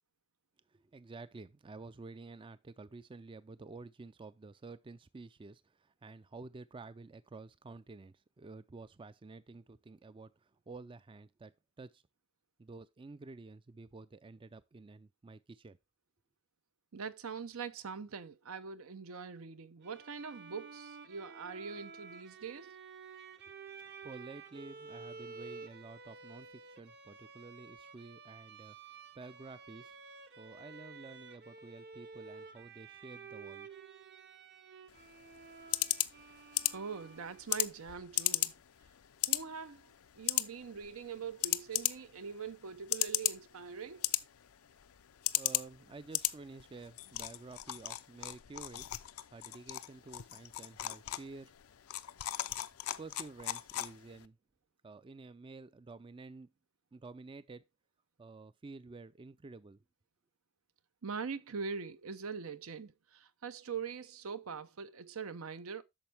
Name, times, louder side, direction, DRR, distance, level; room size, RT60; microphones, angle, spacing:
voice 1, 0.7-12.0 12.6-15.8 23.8-28.8 29.2-30.0 30.4-33.7 45.4-48.9 49.3-51.5 53.0-54.4 54.8-56.5 56.9-57.7 58.2-59.8, right 3 dB, 25° right, 0.4 m, -51 dB
voice 2, 16.9-22.7 36.7-38.5 39.3-44.1 61.0-65.8, right 5 dB, 75° right, 0.7 m, -43 dB
Bowed string instrument, 19.8-37.6, right 5 dB, 50° right, 1.0 m, -52 dB
sound 1, 34.9-54.3, left 16 dB, 85° left, 0.5 m, -37 dB
8.8 x 6.3 x 3.4 m
head